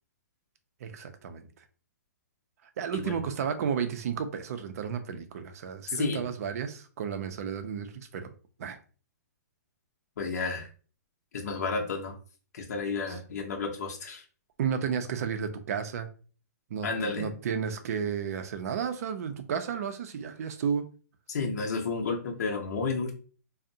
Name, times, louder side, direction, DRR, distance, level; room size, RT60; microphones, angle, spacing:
voice 1, 0.8-1.5 2.8-8.3 8.6-8.8 14.6-16.1 16.7-20.8, right 7 dB, 60° right, 8 dB, 0.5 m, -32 dB
voice 2, 5.9-6.3 10.2-10.7 11.3-12.2 12.5-14.2 16.8-17.3 21.3-23.1, left 4 dB, 65° left, 0 dB, 0.6 m, -31 dB
2.5 x 2.0 x 2.7 m, 0.38 s
hypercardioid pair, 130°, 9 cm